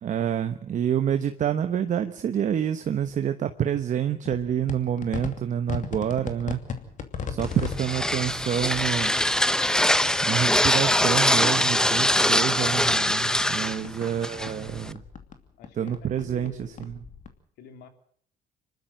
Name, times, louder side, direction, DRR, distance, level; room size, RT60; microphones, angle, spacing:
voice 1, 0.0-6.6 7.3-9.1 10.2-15.0 15.8-17.0, right 9 dB, 45° right, 8 dB, 1.2 m, -27 dB
sound 1, 4.3-11.5 11.7-14.1 14.4-17.3, left 6 dB, 50° left, 2.7 m, -38 dB
sound 2, 7.4-14.9, left 1 dB, 5° left, 0.8 m, -23 dB
voice 2, 15.6-17.0 17.6-17.9, left 7 dB, 80° left, 7 dB, 3.3 m, -47 dB
25.5 x 12.5 x 8.8 m, 0.62 s
cardioid pair, 110°, 17 cm